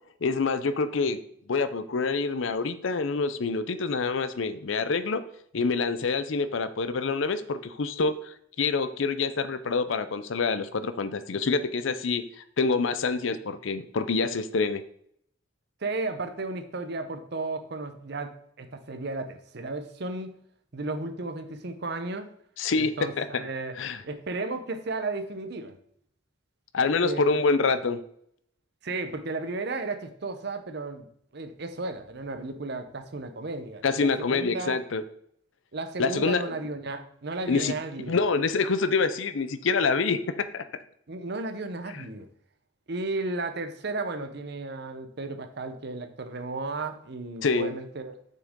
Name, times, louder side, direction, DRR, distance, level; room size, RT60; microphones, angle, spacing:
voice 1, 0.2-1.2 1.5-5.2 5.5-12.2 12.6-14.8 22.6-23.3 23.8-24.0 26.7-28.0 33.8-35.0 36.0-36.5 37.5-37.7 38.1-40.7 41.9-42.1 47.4-47.7, left 4 dB, 70° left, 12 dB, 0.6 m, -26 dB
voice 2, 15.8-20.4 20.7-22.3 22.8-23.8 24.0-25.8 27.0-27.3 28.8-31.1 31.3-34.8 35.7-38.2 41.1-42.3 42.9-48.2, right 3 dB, 55° right, 8 dB, 0.8 m, -34 dB
6.7 x 6.2 x 3.7 m, 0.69 s
head